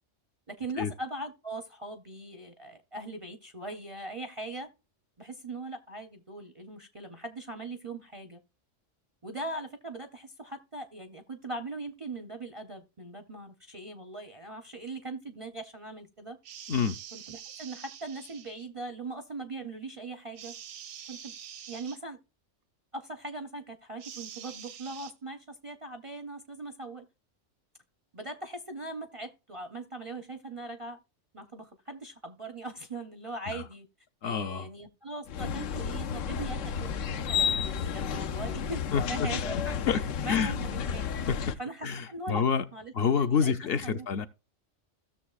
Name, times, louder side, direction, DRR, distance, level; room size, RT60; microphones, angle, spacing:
voice 1, 0.5-4.7 5.2-8.4 9.2-16.4 17.1-20.5 21.1-21.3 21.7-22.2 22.9-27.1 28.1-31.0 31.3-33.9 34.2-37.6 37.9-39.8 40.2-41.1 41.6-42.4 42.7-43.6 43.8-44.1, right 2 dB, 40° right, 0.5 m, -40 dB
sound 1, 16.4-18.7 20.4-22.0 24.0-25.1, right 9 dB, 75° right, 0.9 m, -45 dB
voice 2, 34.2-34.7 38.9-39.3 39.9-40.0 40.3-40.5 41.3-41.4 41.8-42.6 42.9-44.3, left 6 dB, 60° left, 0.7 m, -27 dB
sound 2, 35.3-41.5, left 7 dB, 90° left, 1.0 m, -32 dB
16.5 x 6.6 x 2.3 m
omnidirectional pair, 1.3 m